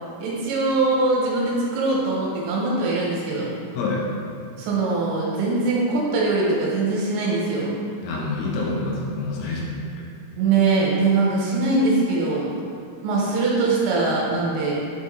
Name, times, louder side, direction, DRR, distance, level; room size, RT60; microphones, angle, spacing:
voice 1, 0.2-3.5 4.6-7.7 10.4-12.5 13.0-14.7, right 3 dB, 80° right, -4 dB, 3.3 m, -22 dB
voice 2, 8.0-9.8, left 3 dB, 80° left, -3 dB, 3.2 m, -27 dB
7.4 x 4.1 x 3.6 m, 2.3 s
omnidirectional pair, 5.9 m